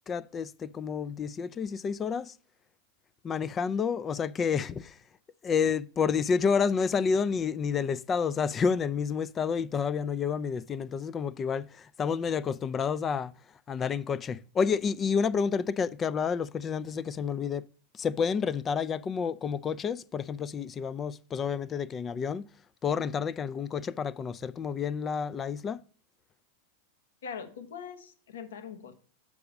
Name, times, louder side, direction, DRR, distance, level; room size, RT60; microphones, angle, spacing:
voice 1, 0.1-2.3 3.2-5.0 5.4-13.3 13.7-17.6 18.0-22.4 22.8-25.8, left 6 dB, 25° left, 0.3 m, -29 dB
voice 2, 27.2-28.9, left 7 dB, 85° left, 1.0 m, -42 dB
6.8 x 4.8 x 5.0 m
hypercardioid pair, 115°, 0 cm